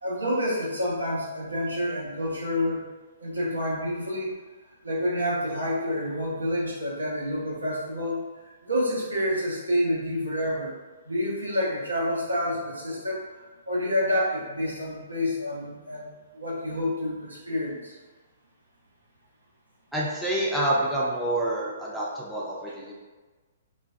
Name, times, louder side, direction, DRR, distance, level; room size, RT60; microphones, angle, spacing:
voice 1, 0.0-2.8 3.2-4.3 4.8-8.2 8.6-10.7 11.1-16.1 16.3-17.9, equal, 90° right, -6 dB, 0.8 m, -28 dB
voice 2, 19.9-22.9, right 1 dB, ahead, -6 dB, 0.5 m, -27 dB
2.4 x 2.2 x 2.4 m, 1.3 s
figure-of-eight pair, 120°, 0 cm